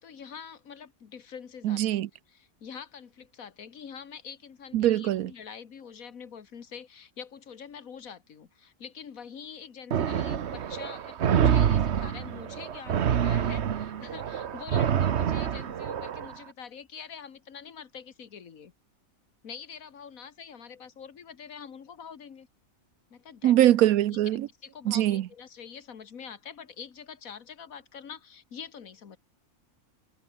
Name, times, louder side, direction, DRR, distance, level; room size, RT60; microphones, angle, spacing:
voice 1, 0.0-1.8 2.3-18.7 19.4-22.5 23.1-23.9 24.6-29.2, left 7 dB, 75° left, 1.9 m, -45 dB
voice 2, 1.6-2.1 4.7-5.3 23.4-24.5 24.9-25.3, right 13 dB, 85° right, 1.1 m, -22 dB
sound 1, 9.9-16.3, right 8 dB, 55° right, 1.1 m, -27 dB
omnidirectional pair, 1.5 m